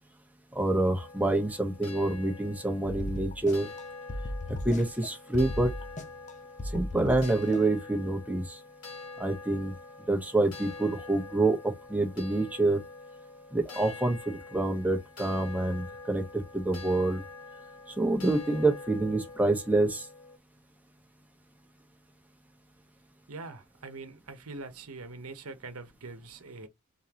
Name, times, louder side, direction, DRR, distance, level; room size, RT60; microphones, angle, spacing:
voice 1, 0.5-3.7 4.6-5.7 6.7-8.6 9.2-9.7 10.1-12.8 13.5-17.2 18.0-20.1, right 2 dB, 5° right, 1.1 m, -27 dB
sound 1, 1.0-20.4, left 3 dB, 75° left, 1.9 m, -46 dB
sound 2, 2.8-3.8 4.1-5.1 5.3-6.3 6.6-7.6, left 1 dB, 35° left, 0.9 m, -36 dB
voice 2, 23.3-26.7, right 3 dB, 70° right, 1.0 m, -43 dB
4.1 x 3.8 x 3.0 m
head